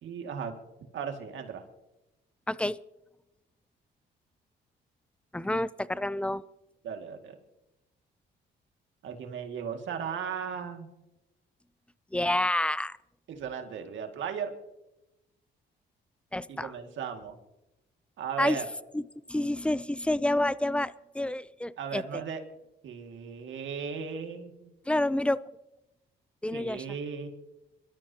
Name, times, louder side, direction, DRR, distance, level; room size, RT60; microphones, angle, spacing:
voice 1, 0.0-0.5 0.9-1.6 6.8-7.4 9.0-10.9 13.3-14.5 16.5-17.4 18.2-18.7 21.8-22.4 22.8-24.7 26.5-27.3, right 7 dB, 75° right, 4 dB, 2.2 m, -36 dB
voice 2, 2.5-2.8 5.3-6.4 12.1-13.0 16.3-16.7 18.4-18.6 18.9-19.0 19.3-22.0 24.9-25.4 26.4-26.8, left 1 dB, 5° left, 17 dB, 0.5 m, -28 dB
27.0 x 13.0 x 2.9 m, 0.94 s
cardioid pair, 90°, 20 cm